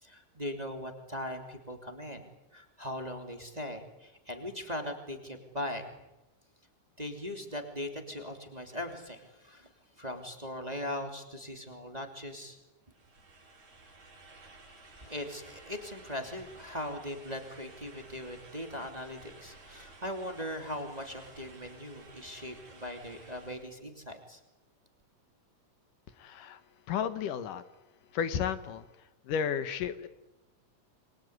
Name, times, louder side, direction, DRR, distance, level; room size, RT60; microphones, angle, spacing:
voice 1, 0.0-5.9 7.0-12.6 15.0-24.4, left 1 dB, 10° right, 5 dB, 2.7 m, -40 dB
sound 1, 12.9-23.7, right 3 dB, 60° right, 6.6 m, -54 dB
voice 2, 26.2-26.6 26.9-27.6 28.1-28.9 29.2-30.1, left 8 dB, 80° left, 12 dB, 2.8 m, -32 dB
28.0 x 22.5 x 9.6 m, 0.98 s
omnidirectional pair, 3.8 m